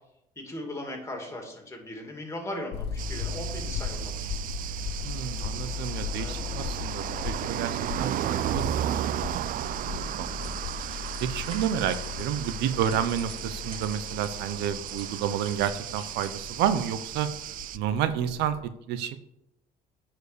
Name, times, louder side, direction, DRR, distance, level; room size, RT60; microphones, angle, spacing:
voice 1, 0.4-4.3 6.2-6.4 9.8-10.2 12.7-12.9, left 1 dB, 15° left, 2 dB, 2.5 m, -38 dB
sound 1, 2.7-18.6, left 6 dB, 80° left, 0.8 m, -37 dB
sound 2, 3.0-17.8, right 12 dB, 55° right, 0.4 m, -34 dB
voice 2, 5.0-10.5 10.8-17.3 17.7-19.2, right 9 dB, 90° right, 12 dB, 0.7 m, -30 dB
sound 3, 10.4-16.5, right 3 dB, 35° right, 3.8 m, -50 dB
9.6 x 4.7 x 6.7 m, 0.81 s
cardioid pair, 110°, 17 cm